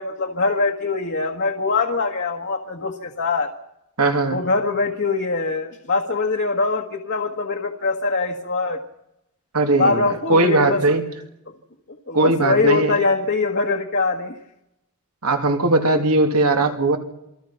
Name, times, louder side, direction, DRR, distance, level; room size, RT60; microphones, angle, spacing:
voice 1, 0.0-3.5 4.3-8.8 9.8-10.8 12.1-14.3, left 3 dB, 55° left, 1 dB, 1.6 m, -22 dB
voice 2, 4.0-4.4 9.5-11.0 12.1-13.0 15.2-17.0, right 2 dB, 90° right, 4 dB, 2.8 m, -19 dB
27.5 x 21.5 x 5.9 m, 0.89 s
head